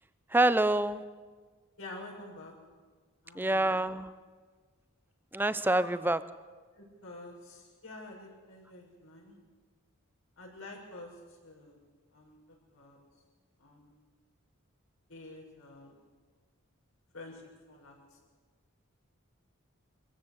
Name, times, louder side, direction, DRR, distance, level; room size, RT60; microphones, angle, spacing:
voice 1, 0.3-1.0 3.4-4.1 5.3-6.2, right 1 dB, 10° right, 14 dB, 0.6 m, -26 dB
voice 2, 1.8-2.5 3.2-3.8 5.8-5.9 6.7-9.4 10.4-11.8 12.1-12.4 12.7-13.2 13.6-14.0 15.1-16.0 17.1-17.4 17.7-18.2, left 2 dB, 70° left, -1 dB, 6.0 m, -48 dB
24.0 x 15.0 x 8.1 m, 1.5 s
head